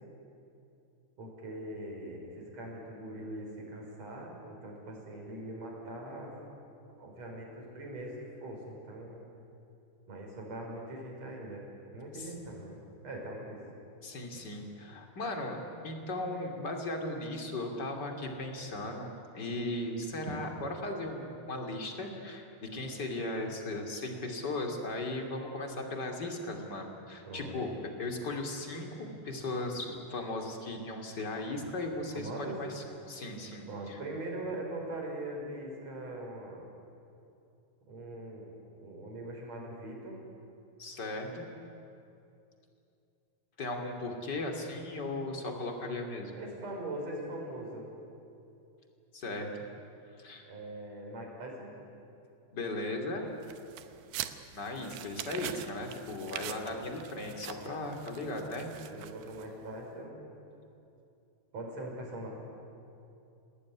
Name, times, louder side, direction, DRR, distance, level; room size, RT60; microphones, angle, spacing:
voice 1, 1.2-6.3 7.0-8.1 8.4-9.2 10.1-11.6 11.9-13.6 27.2-27.7 32.1-32.6 33.7-36.6 37.9-38.5 38.7-40.2 46.3-47.9 50.5-51.7 58.8-60.2 61.5-62.3, right 1 dB, 35° right, 0 dB, 6.3 m, -41 dB
voice 2, 14.0-15.6 15.8-27.7 28.0-34.0 40.8-41.5 43.6-46.3 49.1-49.7 50.2-50.5 52.5-53.3 54.5-58.7, left 2 dB, 30° left, 3 dB, 2.5 m, -37 dB
sound 1, 53.4-59.7, right 12 dB, 75° right, 2.8 m, -44 dB
28.5 x 19.0 x 9.9 m, 2.7 s
omnidirectional pair, 5.3 m